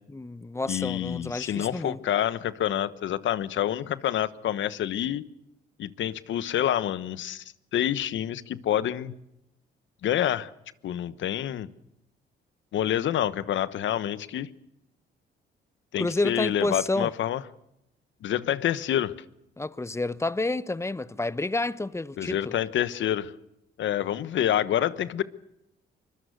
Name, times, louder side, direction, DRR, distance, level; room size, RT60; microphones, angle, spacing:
voice 1, 0.1-2.0 16.0-17.1 19.6-22.5, left 2 dB, 15° left, 0.9 m, -29 dB
voice 2, 0.7-5.2 5.8-7.4 7.7-9.2 10.0-10.5 10.8-11.7 12.7-14.5 15.9-17.4 18.2-19.1 22.2-23.3 23.8-25.2, left 11 dB, 70° left, 1.2 m, -27 dB
24.5 x 22.0 x 6.7 m
cardioid pair, 90°, 20 cm